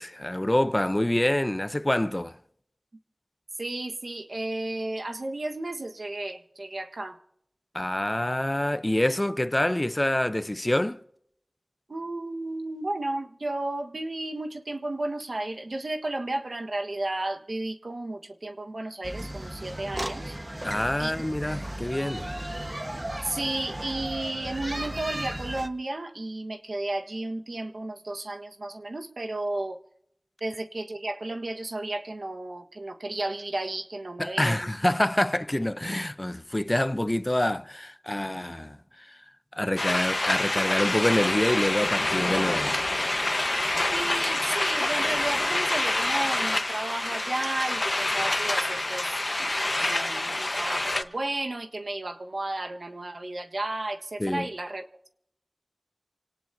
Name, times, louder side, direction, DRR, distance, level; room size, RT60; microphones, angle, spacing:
voice 1, 0.0-2.4 7.7-11.0 20.6-22.3 34.2-39.2 39.5-42.8 54.2-54.5, left 1 dB, 25° left, 0.7 m, -26 dB
voice 2, 3.6-7.2 11.9-20.4 21.0-21.1 23.2-29.8 30.4-34.7 43.9-49.1 49.4-54.8, right 2 dB, 80° right, 1.4 m, -33 dB
sound 1, 19.0-25.7, right 1 dB, 30° right, 1.3 m, -35 dB
sound 2, 39.8-51.0, left 2 dB, 50° left, 1.1 m, -27 dB
28.0 x 18.5 x 2.7 m
wide cardioid pair, 55°, 0 cm